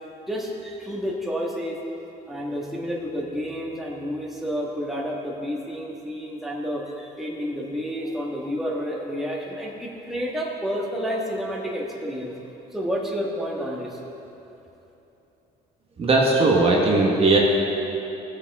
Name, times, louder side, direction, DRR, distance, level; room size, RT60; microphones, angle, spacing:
voice 1, 0.3-1.8 2.3-12.3 12.7-14.0, equal, ahead, -4 dB, 1.7 m, -30 dB
voice 2, 16.0-17.4, right 2 dB, 35° right, -2 dB, 1.4 m, -18 dB
17.0 x 7.4 x 3.6 m, 3.0 s
cardioid pair, 110°, 17 cm